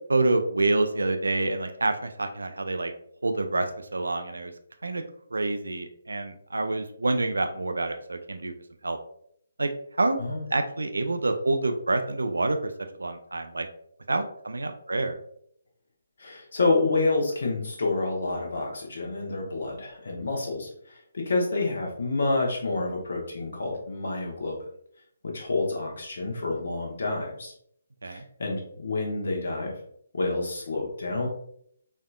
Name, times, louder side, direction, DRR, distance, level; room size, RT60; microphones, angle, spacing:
voice 1, 0.1-2.9 3.2-4.5 4.8-5.0 5.3-8.5 8.8-9.0 9.6-9.7 10.0-10.2 10.5-12.7 13.0-13.7 14.1-15.2 28.0-28.2, right 2 dB, 65° right, 7 dB, 0.4 m, -27 dB
voice 2, 16.2-24.6 25.3-27.5 28.0-29.7 30.1-31.3, left 3 dB, 55° left, -1 dB, 1.0 m, -28 dB
4.2 x 2.6 x 2.3 m, 0.67 s
figure-of-eight pair, 140°, 0 cm